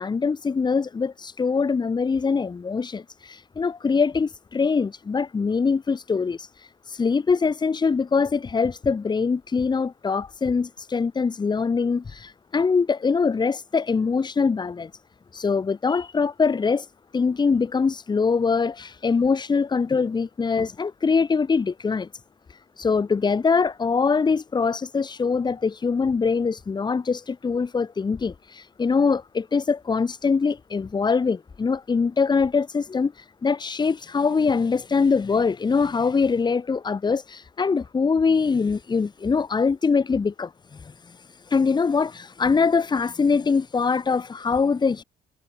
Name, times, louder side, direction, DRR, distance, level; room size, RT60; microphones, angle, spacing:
voice 1, 0.0-6.5 6.9-14.9 15.3-16.9 17.1-22.1 22.8-33.1 33.4-40.5 40.8-40.9 41.5-45.0, left 5 dB, 25° left, 2.2 m, -23 dB
cardioid pair, 110°, 17 cm